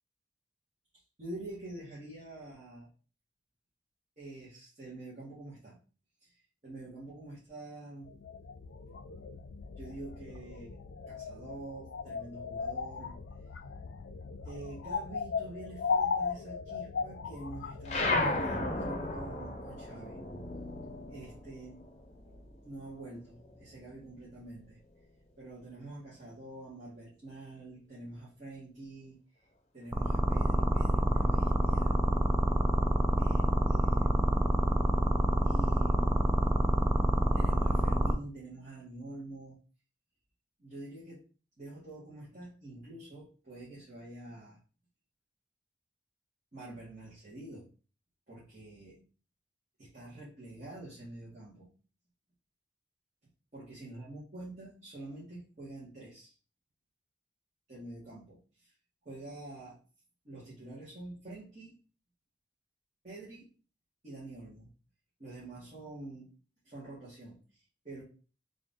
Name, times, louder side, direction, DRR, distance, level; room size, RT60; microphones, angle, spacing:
voice 1, 0.9-2.9 4.2-5.8 6.2-6.3 6.6-8.1 9.8-10.7 11.1-13.2 14.4-20.2 21.1-21.9 22.6-24.8 25.4-29.2 29.7-32.0 33.2-34.4 35.4-36.3 37.3-39.6 40.6-41.2 41.6-44.6 46.5-47.7 48.3-49.0 49.8-51.7 53.5-56.3 57.7-58.7 59.0-59.8 60.2-61.8 63.0-63.5 64.0-64.7 65.2-66.3 66.6-68.0, right 2 dB, 40° right, -9 dB, 1.6 m, -46 dB
sound 1, 8.0-18.5, left 5 dB, 85° left, 0.4 m, -37 dB
sound 2, 17.9-22.7 23.0-24.5, left 2 dB, 35° left, 0.8 m, -35 dB
sound 3, 29.9-38.1, right 1 dB, 15° right, 0.3 m, -26 dB
3.6 x 2.6 x 3.6 m, 0.36 s
head